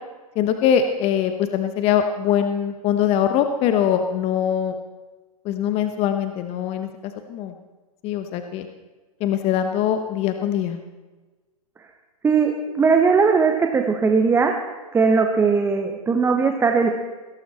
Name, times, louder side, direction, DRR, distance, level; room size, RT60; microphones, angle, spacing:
voice 1, 0.4-4.7 5.4-7.5 8.0-8.7 9.2-10.8, left 9 dB, 30° left, 7 dB, 1.0 m, -22 dB
voice 2, 12.2-14.5 14.9-16.9, right 5 dB, 10° right, 4 dB, 1.0 m, -19 dB
17.0 x 13.5 x 4.2 m, 1.3 s
figure-of-eight pair, 110°, 19 cm